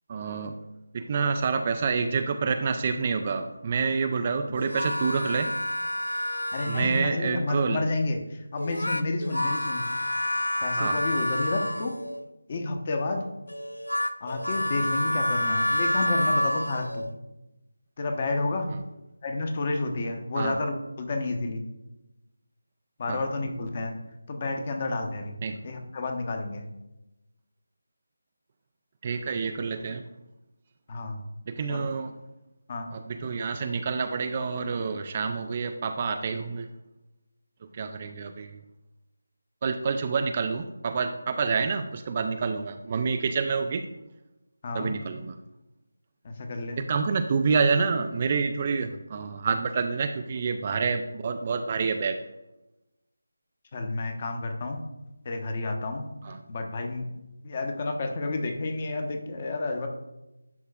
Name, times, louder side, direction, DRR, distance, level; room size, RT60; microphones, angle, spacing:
voice 1, 0.1-0.5 0.9-5.5 6.7-7.8 10.8-11.0 20.4-20.6 23.1-23.2 25.4-25.6 29.0-30.0 31.5-32.1 32.9-36.7 37.7-38.6 39.6-43.8 44.7-45.4 46.8-52.2 56.2-56.4, right 5 dB, 30° right, 7 dB, 0.3 m, -28 dB
sound 1, 4.6-7.2 8.6-12.2 13.5-17.1, left 1 dB, 80° left, 0.4 m, -28 dB
voice 2, 6.5-9.8 10.6-12.0 12.5-13.2 14.2-17.1 18.0-18.7 19.2-21.6 23.0-23.9 24.3-25.4 25.6-26.6 30.9-31.2 31.7-31.8 32.7-32.9 44.6-44.9 46.2-46.8 53.7-54.8 55.2-57.1 57.4-59.9, left 2 dB, 30° left, 4 dB, 0.9 m, -30 dB
10.5 x 4.6 x 2.4 m, 0.96 s
figure-of-eight pair, 160°, 0 cm